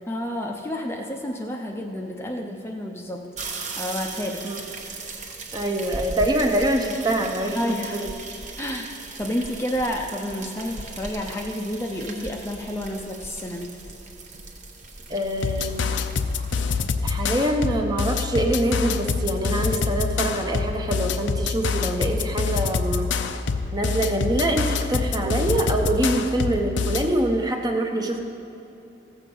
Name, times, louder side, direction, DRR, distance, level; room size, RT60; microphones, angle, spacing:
voice 1, 0.1-4.4 5.1-5.3 7.5-8.0 8.6-13.7, equal, 15° left, 1 dB, 0.5 m, -30 dB
sound 1, 3.4-16.7, right 3 dB, 40° right, 1.0 m, -38 dB
voice 2, 5.5-8.1 15.1-15.9 17.0-23.1 23.7-28.2, right 1 dB, 20° right, 3 dB, 0.8 m, -24 dB
sound 2, 15.4-27.1, left 5 dB, 80° left, 0.6 m, -26 dB
15.0 x 7.4 x 5.4 m, 3.0 s
head